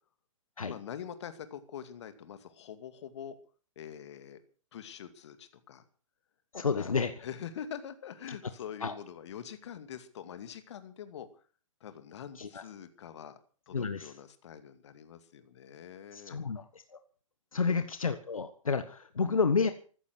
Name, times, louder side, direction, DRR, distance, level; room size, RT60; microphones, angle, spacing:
voice 1, 0.7-3.4 3.8-4.4 4.7-5.8 6.7-6.9 7.2-11.3 11.8-13.4 13.7-16.4 17.5-17.9, left 8 dB, 55° left, 10 dB, 2.4 m, -44 dB
voice 2, 6.5-7.1 8.8-8.9 12.4-12.6 13.7-14.1 16.1-16.6 17.5-19.7, left 5 dB, 85° left, 10 dB, 1.5 m, -30 dB
15.0 x 14.0 x 6.3 m, 0.41 s
hypercardioid pair, 125°, 17 cm